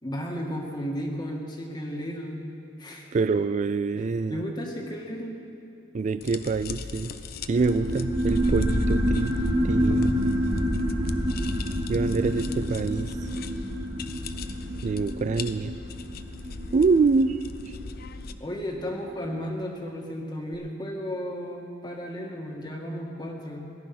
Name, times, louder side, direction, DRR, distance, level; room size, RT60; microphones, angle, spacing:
voice 1, 0.0-2.4 2.8-3.1 4.0-5.4 12.0-12.1 12.4-12.5 18.4-23.7, equal, 25° left, 1 dB, 1.8 m, -34 dB
voice 2, 3.1-4.4 5.9-7.1 7.5-9.4 9.6-10.2 11.9-13.3 14.8-15.7 16.7-17.4 17.7-17.8, right 4 dB, 40° right, 12 dB, 0.3 m, -25 dB
sound 1, 6.2-18.3, left 4 dB, 55° left, 0.6 m, -40 dB
sound 2, 7.5-18.7, equal, 55° right, 3.0 m, -28 dB
18.0 x 11.5 x 6.0 m, 2.6 s
head